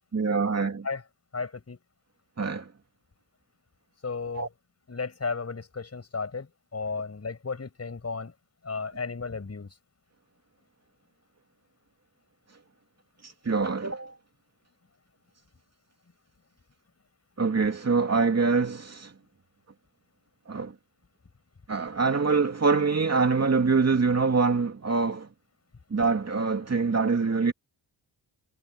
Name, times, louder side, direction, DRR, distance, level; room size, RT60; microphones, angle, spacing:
voice 1, 0.1-0.9 2.4-2.6 4.3-4.5 13.4-14.1 17.4-19.1 20.5-20.7 21.7-25.3 25.9-27.5, right 4 dB, 35° right, 2.7 m, -24 dB
voice 2, 1.3-1.8 4.0-4.5 4.9-6.5 6.7-8.3 8.6-9.7, left 4 dB, 35° left, 5.7 m, -34 dB
wide cardioid pair, 115°, 45 cm